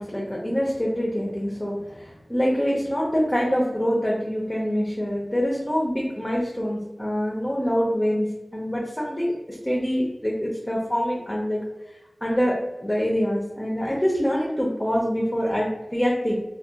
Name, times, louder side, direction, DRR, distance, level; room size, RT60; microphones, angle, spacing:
voice 1, 0.0-8.3 8.5-11.6 12.2-12.6 12.8-16.4, equal, 15° left, -4 dB, 0.5 m, -25 dB
2.4 x 2.1 x 2.7 m, 0.98 s
wide cardioid pair, 55°, 0 cm